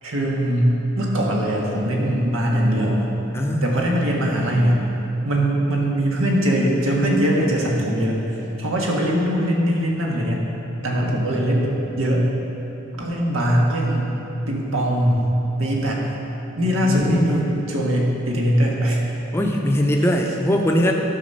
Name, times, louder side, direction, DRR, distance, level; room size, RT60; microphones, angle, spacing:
voice 1, 0.0-3.0 3.6-4.8 5.2-10.5 10.8-12.3 13.0-14.2 14.5-16.1 16.6-19.0, equal, 80° right, -2 dB, 1.6 m, -21 dB
voice 2, 3.3-3.7 16.6-17.4 19.3-20.9, equal, 10° left, 1 dB, 0.6 m, -21 dB
10.5 x 6.1 x 5.5 m, 3.0 s
head